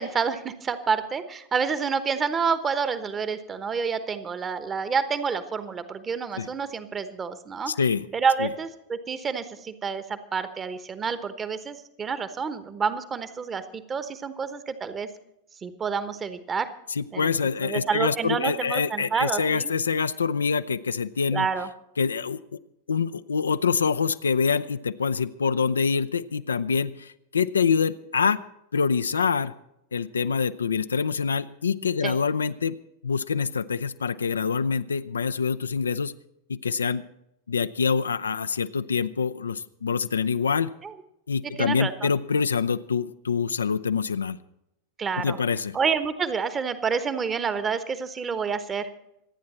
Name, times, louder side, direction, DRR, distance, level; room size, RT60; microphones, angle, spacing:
voice 1, 0.0-7.7 8.1-15.1 15.6-16.7 17.1-17.3 17.6-19.7 21.3-21.7 32.0-32.2 40.8-40.9 41.6-42.1 45.0-45.4 45.7-48.9, right 5 dB, 20° right, 12 dB, 1.1 m, -28 dB
voice 2, 7.7-8.1 8.4-8.5 16.9-21.5 22.0-22.4 22.9-28.4 28.7-29.5 29.9-32.8 33.0-36.1 36.5-37.0 37.5-40.7 41.3-44.4 45.2-45.8, left 5 dB, 70° left, 12 dB, 0.5 m, -25 dB
25.5 x 9.5 x 4.3 m, 0.82 s
figure-of-eight pair, 90°, 0 cm